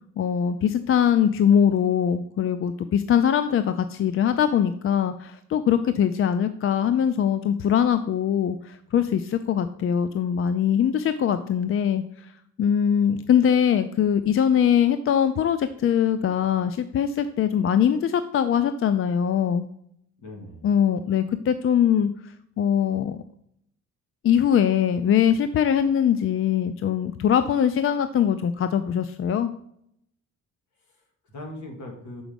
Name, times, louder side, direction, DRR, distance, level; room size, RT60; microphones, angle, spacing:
voice 1, 0.2-12.3 12.6-19.7 20.6-22.1 22.6-23.2 24.2-29.5, left 8 dB, 45° left, 11 dB, 0.4 m, -22 dB
voice 2, 20.2-20.7 30.8-32.2, left 1 dB, 70° left, 1 dB, 2.2 m, -41 dB
6.2 x 5.0 x 5.1 m, 0.72 s
cardioid pair, 90°, 30 cm